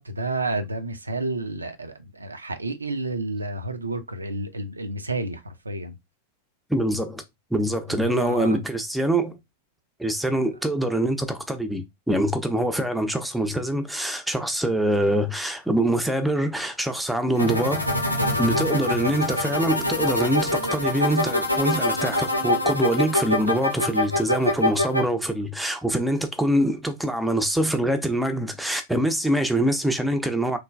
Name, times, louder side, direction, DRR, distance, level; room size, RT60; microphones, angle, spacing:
voice 1, 0.0-6.0 7.9-8.6, right 2 dB, 80° right, 0.4 m, -30 dB
voice 2, 6.7-7.2 7.5-9.4 10.0-17.8 18.4-30.6, right 1 dB, ahead, 0.5 m, -24 dB
sound 1, 17.4-25.0, left 1 dB, 90° left, 0.7 m, -24 dB
3.0 x 2.2 x 2.2 m
figure-of-eight pair, 90°, 0 cm